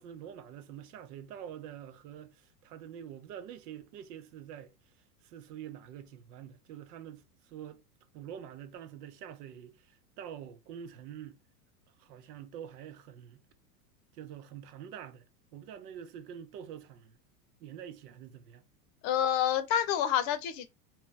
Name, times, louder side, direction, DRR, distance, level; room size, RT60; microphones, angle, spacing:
voice 1, 0.0-4.7 5.2-7.8 8.1-11.4 12.0-13.4 14.1-15.3 15.5-17.1 17.6-18.6, right 9 dB, 70° right, 0.8 m, -46 dB
voice 2, 19.0-20.7, left 10 dB, 45° left, 0.8 m, -28 dB
3.5 x 3.0 x 3.2 m
supercardioid pair, 120°, 48 cm